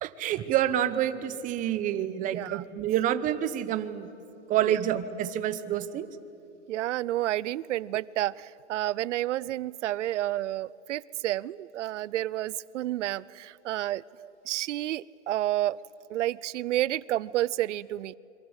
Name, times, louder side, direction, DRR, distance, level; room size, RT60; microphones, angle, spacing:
voice 1, 0.0-4.1 4.5-6.1 17.1-17.2, right 11 dB, 20° right, 12 dB, 0.9 m, -28 dB
voice 2, 2.3-2.6 4.6-4.8 6.7-14.0 14.5-15.8 16.1-18.1, right 14 dB, 85° right, 21 dB, 0.6 m, -30 dB
27.0 x 23.0 x 8.1 m, 2.9 s
supercardioid pair, 150°, 35 cm